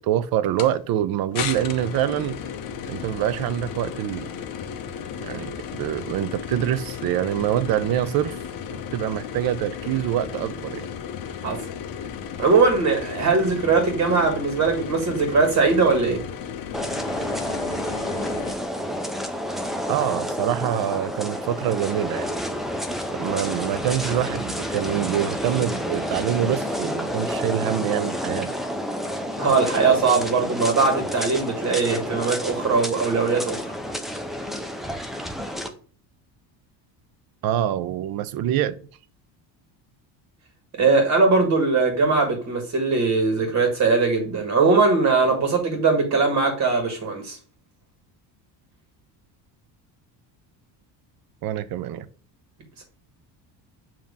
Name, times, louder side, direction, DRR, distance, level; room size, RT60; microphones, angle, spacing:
voice 1, 0.0-2.4 2.9-4.3 5.2-8.4 8.9-10.9 19.9-22.3 23.2-28.6 37.4-38.8 51.4-52.1, right 11 dB, 50° right, 0.6 m, -25 dB
sound 1, 0.6-0.7 1.3-18.5, left 7 dB, 45° left, 0.8 m, -34 dB
voice 2, 12.4-16.2 29.3-33.7 40.8-47.4 52.8-52.9, right 4 dB, 35° right, 1.6 m, -20 dB
sound 2, 16.7-35.7, equal, ahead, 0.3 m, -29 dB
7.3 x 2.9 x 5.2 m
cardioid pair, 150°, 46 cm